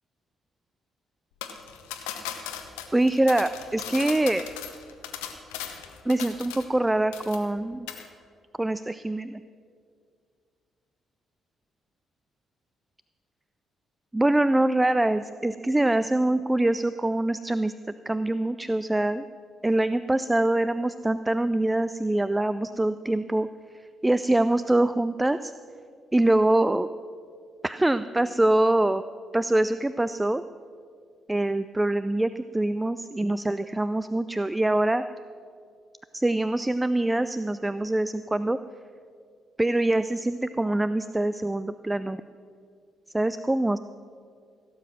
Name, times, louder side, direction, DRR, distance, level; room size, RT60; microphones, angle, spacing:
sound 1, 1.4-6.8 7.1-7.6 7.9-8.1, left 10 dB, 75° left, 0.9 m, -38 dB
voice 1, 2.9-4.4 6.1-7.9 8.6-9.4 14.1-17.7 18.1-19.3 19.6-23.5 23.7-25.5 26.1-26.9 27.6-29.0 29.3-30.4 31.3-35.0 36.1-38.6 39.6-42.2 43.1-43.8, right 1 dB, 15° right, 13 dB, 0.4 m, -24 dB
16.5 x 7.7 x 6.1 m, 2.2 s
figure-of-eight pair, 40°, 0 cm